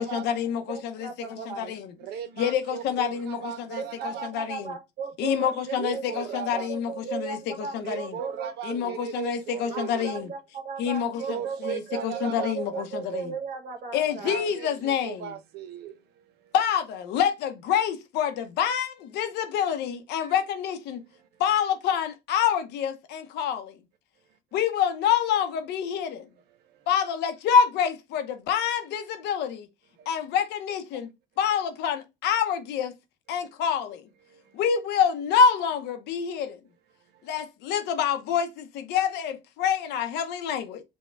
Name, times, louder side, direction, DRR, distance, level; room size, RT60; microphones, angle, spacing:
voice 1, 0.0-1.9 2.4-4.7 5.2-8.2 8.6-10.3 10.8-13.3 13.9-15.3 16.5-21.0 21.4-23.8 24.5-26.3 26.9-29.7 30.1-31.1 31.4-32.9 33.3-34.1 34.5-36.6 37.2-40.8, left 8 dB, 80° left, 0.8 m, -27 dB
voice 2, 0.7-1.8 3.8-6.2 6.5-9.0 9.7-14.5, right 5 dB, 60° right, 1.3 m, -36 dB
voice 3, 2.0-4.3 5.8-6.7 7.8-10.1 11.2-12.8 14.2-16.5 20.2-20.3 26.0-26.1 26.6-26.9 30.0-30.1 34.3-34.6 37.1-37.3, right 8 dB, 75° right, 0.8 m, -38 dB
5.4 x 2.3 x 3.3 m
cardioid pair, 110°, 17 cm